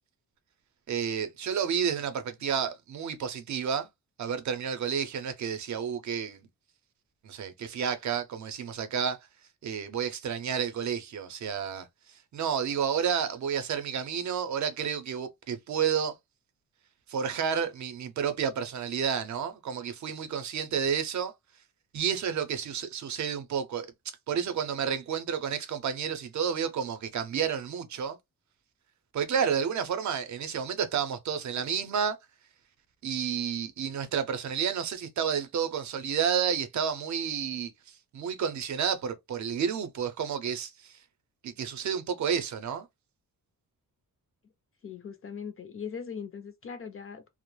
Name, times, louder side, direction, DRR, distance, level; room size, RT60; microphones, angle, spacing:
voice 1, 0.9-3.9 4.2-6.4 7.2-9.2 9.6-11.9 12.3-16.1 17.1-21.3 21.9-23.9 24.3-28.2 29.1-32.2 33.0-37.7 38.1-41.0 41.4-42.9, right 7 dB, 55° right, 0.5 m, -30 dB
voice 2, 44.8-47.3, left 6 dB, 40° left, 0.4 m, -40 dB
2.3 x 2.0 x 3.0 m
wide cardioid pair, 150°, 36 cm